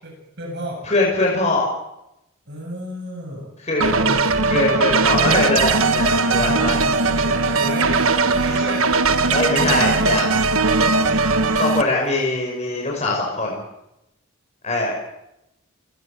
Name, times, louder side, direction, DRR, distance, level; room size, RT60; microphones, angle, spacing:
voice 1, 0.0-0.8 2.5-3.5 3.8-4.2 6.3-8.0 8.4-8.9 12.1-12.2, equal, 50° right, 0 dB, 8.0 m, -32 dB
voice 2, 0.9-1.7 3.6-3.9 4.5-6.7 9.3-10.4 11.5-13.6 14.6-14.9, left 2 dB, 30° left, -1 dB, 6.0 m, -22 dB
sound 1, 3.8-11.8, right 3 dB, 70° right, 1.5 m, -19 dB
30.0 x 20.0 x 6.8 m, 0.88 s
head